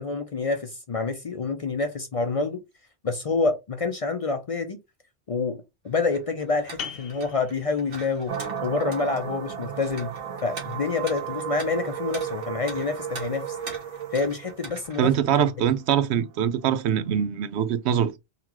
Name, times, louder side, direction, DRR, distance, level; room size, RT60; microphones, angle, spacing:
voice 1, 0.0-2.6 3.0-4.8 5.3-8.3 8.6-10.1 10.4-13.6 14.1-15.1 15.4-15.5, left 4 dB, 45° left, 0.5 m, -27 dB
sound 1, 5.9-15.0, right 3 dB, 60° right, 1.3 m, -43 dB
sound 2, 6.8-12.1, left 7 dB, 65° left, 0.9 m, -44 dB
sound 3, 8.3-17.2, right 8 dB, 45° right, 0.5 m, -34 dB
voice 2, 15.0-18.1, right 9 dB, 90° right, 0.9 m, -23 dB
4.0 x 2.9 x 2.9 m
omnidirectional pair, 1.1 m